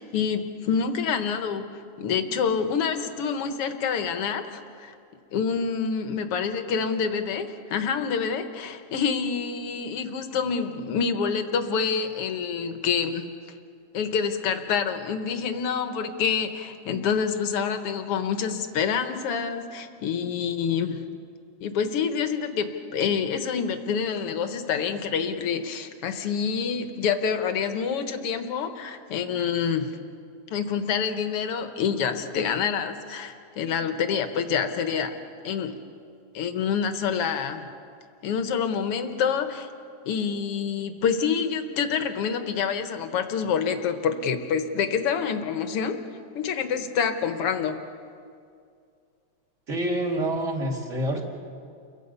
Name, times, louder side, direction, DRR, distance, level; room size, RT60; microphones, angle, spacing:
voice 1, 0.0-1.7 2.0-4.9 5.3-13.3 13.9-21.0 21.6-29.9 30.5-35.1 35.4-35.8 36.3-37.7 38.2-39.7 40.1-46.0 46.4-47.8, left 6 dB, 60° left, 8 dB, 2.0 m, -27 dB
voice 2, 49.7-51.2, right 1 dB, 25° right, 1 dB, 2.6 m, -27 dB
29.5 x 23.0 x 5.6 m, 2.3 s
omnidirectional pair, 3.3 m